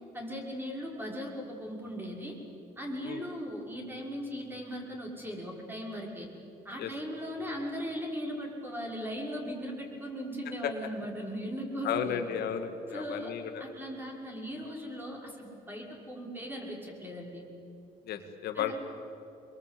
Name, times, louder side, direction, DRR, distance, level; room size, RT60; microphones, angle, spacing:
voice 1, 0.1-2.4 2.8-6.3 6.6-12.2 12.9-13.3 13.6-17.4 18.5-18.7, equal, 10° right, 0 dB, 6.0 m, -38 dB
voice 2, 11.8-13.6 18.1-18.7, left 9 dB, 70° left, 6 dB, 2.0 m, -33 dB
25.0 x 22.5 x 8.5 m, 2.7 s
cardioid pair, 110°, 17 cm